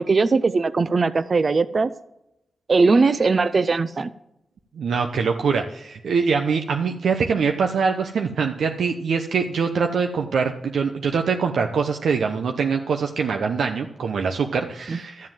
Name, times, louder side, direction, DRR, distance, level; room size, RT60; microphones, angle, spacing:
voice 1, 0.0-1.9 2.7-4.1 14.9-15.0, right 4 dB, 45° right, 14 dB, 0.5 m, -19 dB
voice 2, 4.8-15.3, right 5 dB, 85° right, 4 dB, 0.8 m, -23 dB
13.0 x 7.6 x 7.5 m, 0.85 s
cardioid pair, 90°, 0 cm